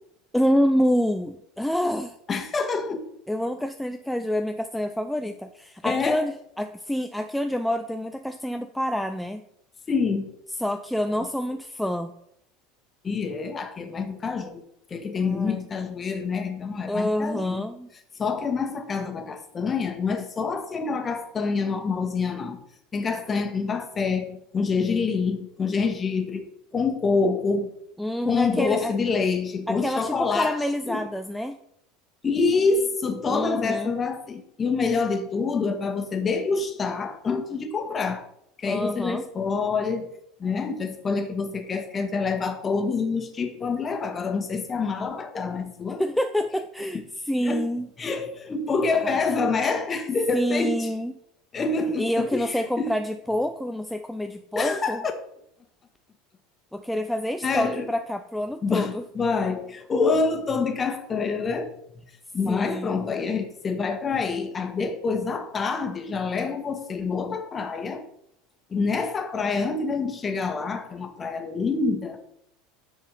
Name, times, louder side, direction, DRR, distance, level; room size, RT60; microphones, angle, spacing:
voice 1, 0.3-2.1 3.3-9.4 10.6-12.1 15.2-15.7 16.9-17.9 28.0-28.9 29.7-31.6 33.3-33.9 38.7-39.2 46.0-47.9 49.0-49.2 50.3-51.1 52.0-55.0 56.7-59.0 62.5-63.0, equal, ahead, 0.5 m, -27 dB
voice 2, 2.3-3.0 5.8-6.2 9.9-10.3 11.1-11.3 13.0-14.6 14.9-17.7 18.2-22.6 22.9-26.4 26.7-27.7 28.2-30.6 30.9-31.0 32.2-38.2 38.6-40.1 40.4-46.0 47.4-47.6 48.0-50.9 51.5-52.9 54.5-55.1 57.4-57.9 58.6-61.7 62.3-68.0 68.7-72.2, left 4 dB, 25° left, 1.4 m, -26 dB
9.7 x 4.4 x 5.3 m
figure-of-eight pair, 70°, 0 cm